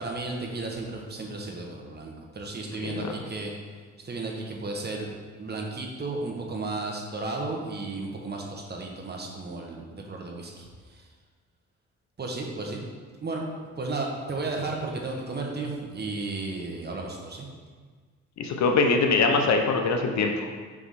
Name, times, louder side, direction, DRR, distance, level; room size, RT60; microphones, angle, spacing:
voice 1, 0.0-3.5 4.0-5.1 5.4-11.0 12.2-12.8 13.2-13.4 13.8-17.5, right 3 dB, 35° right, 0 dB, 1.2 m, -34 dB
voice 2, 18.4-20.5, left 4 dB, 65° left, 4 dB, 0.8 m, -23 dB
5.3 x 4.9 x 4.2 m, 1.5 s
cardioid pair, 90°, 30 cm